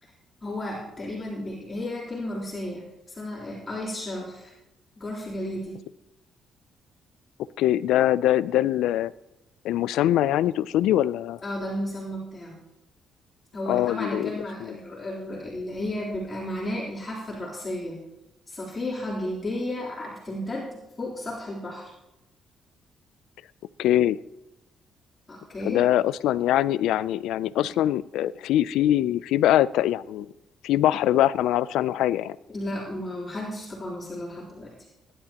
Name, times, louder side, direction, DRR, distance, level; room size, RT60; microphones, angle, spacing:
voice 1, 0.4-4.5 5.0-5.7 11.4-12.5 13.5-18.0 18.5-20.7 21.0-21.9 25.3-25.8 32.5-34.7, left 1 dB, 25° left, -6 dB, 3.5 m, -33 dB
voice 2, 7.6-9.1 9.6-11.4 13.7-14.3 14.6-14.8 23.8-24.2 25.6-30.3 30.6-32.4, left 12 dB, 85° left, 18 dB, 0.4 m, -23 dB
20.5 x 11.0 x 2.9 m, 0.95 s
cardioid pair, 90°, 0 cm